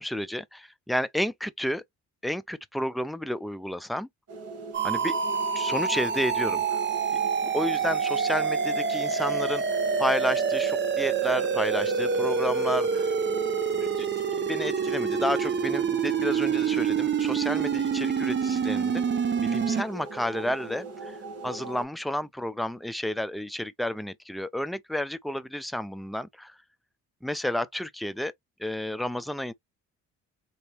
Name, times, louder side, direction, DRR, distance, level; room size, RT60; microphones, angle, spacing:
voice 1, 0.0-1.8 2.2-4.1 4.8-5.1 5.5-6.8 7.4-13.0 13.7-14.1 14.4-19.0 19.4-21.2 21.4-26.6 27.2-28.3 28.6-29.5, left 1 dB, ahead, 0.5 m, -31 dB
sound 1, 4.3-21.8, right 3 dB, 55° right, 2.2 m, -40 dB
sound 2, 4.7-19.8, right 6 dB, 40° right, 0.8 m, -27 dB
3.9 x 2.9 x 3.3 m
cardioid pair, 90°, 30 cm